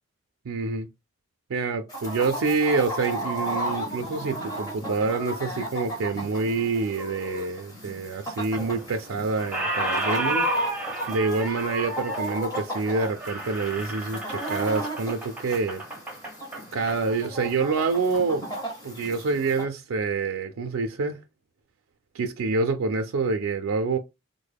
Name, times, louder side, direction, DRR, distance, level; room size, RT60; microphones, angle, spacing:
voice 1, 0.5-0.9 1.5-10.5 11.1-15.8 16.7-18.4 18.8-21.2 22.1-24.0, right 4 dB, 85° right, 0.4 m, -27 dB
Chicken rooster, 1.9-19.6, equal, 20° left, 1.0 m, -34 dB
Squeak, 8.5-9.1 9.4-17.0, right 2 dB, 5° right, 0.7 m, -33 dB
3.5 x 2.1 x 3.3 m
head